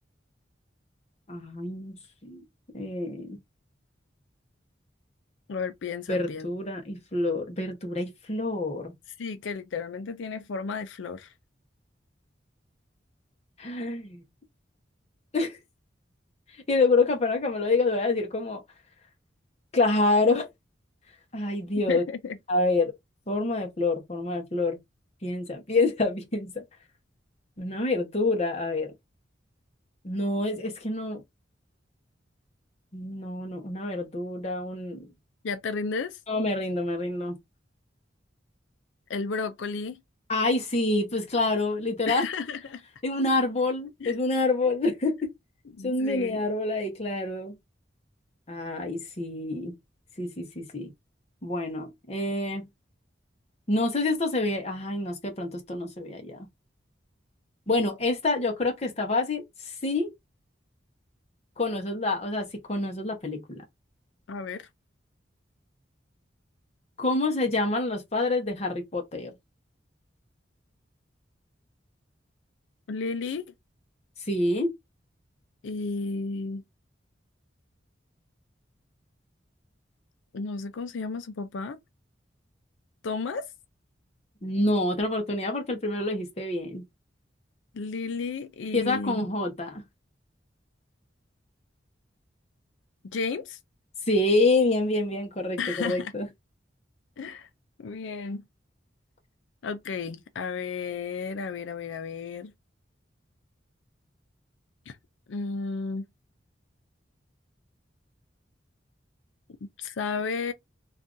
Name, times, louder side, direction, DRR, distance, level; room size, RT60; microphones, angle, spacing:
voice 1, 1.3-1.9 2.2-2.4 2.7-3.4 6.1-8.9 13.6-14.2 15.3-15.6 16.7-18.6 19.7-20.5 21.3-22.0 22.5-22.9 23.3-24.8 25.2-26.6 27.6-28.9 30.0-31.2 32.9-35.1 36.3-37.4 40.3-42.2 43.0-45.3 45.8-47.5 48.5-49.7 50.2-50.9 51.4-52.7 53.7-56.5 57.7-60.1 61.6-63.6 67.0-69.3 74.3-74.7 84.4-86.8 88.7-89.8 94.1-95.6 95.8-96.3, left 2 dB, 35° left, 0.9 m, -27 dB
voice 2, 5.5-6.5 9.2-11.3 21.9-22.4 35.4-36.2 39.1-40.0 42.1-42.8 44.0-44.2 45.7-46.4 64.3-64.7 72.9-73.4 75.6-76.6 80.3-81.8 83.0-83.5 87.7-89.3 93.0-93.6 95.6-96.1 97.2-97.5 97.8-98.4 99.6-102.5 104.9-105.0 105.3-106.1 109.6-110.5, left 4 dB, 85° left, 0.4 m, -33 dB
2.6 x 2.4 x 3.6 m
head